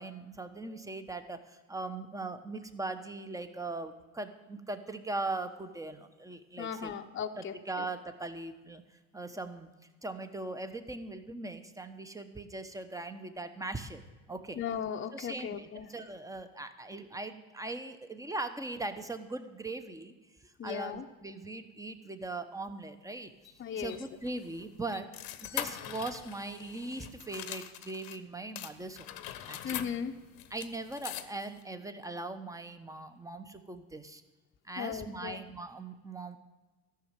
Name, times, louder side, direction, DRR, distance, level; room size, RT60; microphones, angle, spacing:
voice 1, 0.0-6.9 7.4-8.8 9.1-9.7 10.0-14.0 14.3-14.6 15.1-20.1 20.4-23.3 23.7-25.1 25.4-29.1 29.5-29.8 30.5-34.2 34.6-36.4, right 2 dB, 10° right, 9 dB, 1.2 m, -40 dB
voice 2, 6.6-7.6 14.6-15.9 20.6-21.1 23.6-24.0 29.6-30.2 34.8-35.4, left 8 dB, 35° left, 5 dB, 0.9 m, -37 dB
sound 1, 23.4-28.2 28.6-31.6, left 12 dB, 75° left, 1.1 m, -43 dB
13.5 x 6.5 x 8.9 m, 1.2 s
supercardioid pair, 85°, 36 cm